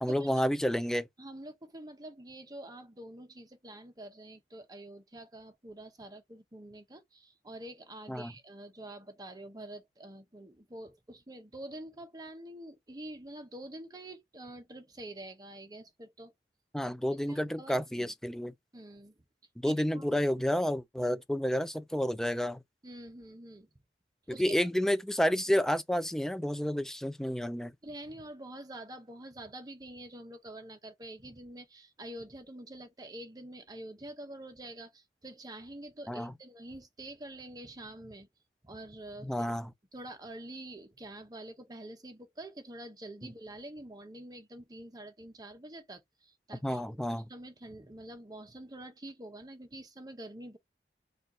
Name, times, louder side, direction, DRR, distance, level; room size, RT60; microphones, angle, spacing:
voice 1, 0.0-1.1 8.1-8.3 16.7-18.5 19.6-22.6 24.3-27.7 36.1-36.3 39.2-39.7 46.6-47.2, equal, 5° left, 0.4 m, -30 dB
voice 2, 1.2-16.3 17.1-18.1 18.7-19.2 19.6-20.2 22.8-23.7 24.3-24.6 27.8-38.3 38.6-39.5 39.9-50.6, right 1 dB, 20° right, 0.8 m, -47 dB
4.3 x 2.5 x 4.2 m
head